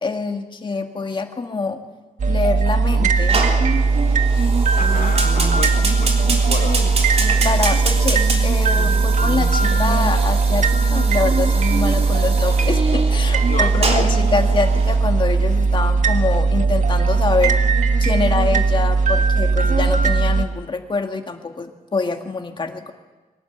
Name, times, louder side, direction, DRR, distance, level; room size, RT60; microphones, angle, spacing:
voice 1, 0.0-1.8 2.3-3.4 6.6-6.9 7.4-17.6 18.0-22.9, left 4 dB, 35° left, 4 dB, 2.0 m, -25 dB
sound 1, 2.2-20.5, right 4 dB, 65° right, 1.4 m, -18 dB
Fire, 3.3-15.0, right 3 dB, 50° right, 3.4 m, -28 dB
voice 2, 4.7-6.9 13.4-14.1, left 6 dB, 70° left, 7 dB, 0.8 m, -31 dB
23.0 x 18.5 x 8.4 m, 1.2 s
wide cardioid pair, 165°, 14 cm